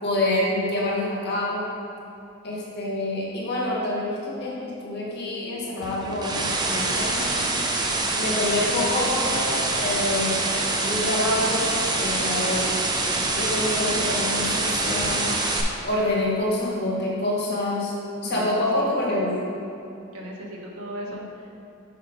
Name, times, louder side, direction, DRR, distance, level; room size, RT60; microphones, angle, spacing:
voice 1, 0.0-1.7 2.4-7.3 8.2-10.6 10.8-12.8 13.4-15.3 15.8-17.9 18.2-19.4 21.1-21.2, left 1 dB, 50° left, -4 dB, 1.4 m, -26 dB
sound 1, 5.8-15.6, right 2 dB, 20° right, 0.5 m, -25 dB
voice 2, 18.2-18.8 20.1-21.5, equal, 80° right, -2 dB, 1.2 m, -37 dB
5.7 x 4.9 x 5.1 m, 2.7 s
head